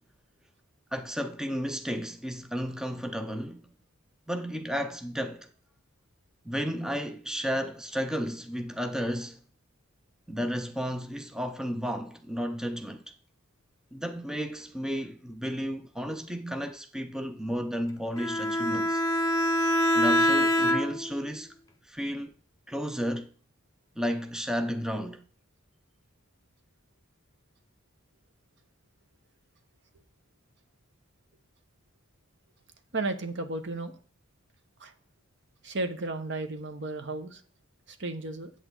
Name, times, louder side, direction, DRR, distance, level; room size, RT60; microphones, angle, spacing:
voice 1, 0.9-3.7 4.3-5.5 6.4-9.4 10.3-13.0 13.9-19.0 19.9-21.5 21.8-22.3 22.7-23.3 24.0-25.2, equal, 5° right, 0.5 m, -33 dB
Bowed string instrument, 18.2-21.2, equal, 15° left, 1.0 m, -25 dB
voice 2, 32.9-33.9 34.8-34.9 35.6-37.4 37.9-38.5, right 2 dB, 60° right, 1.0 m, -33 dB
8.2 x 7.9 x 3.9 m
head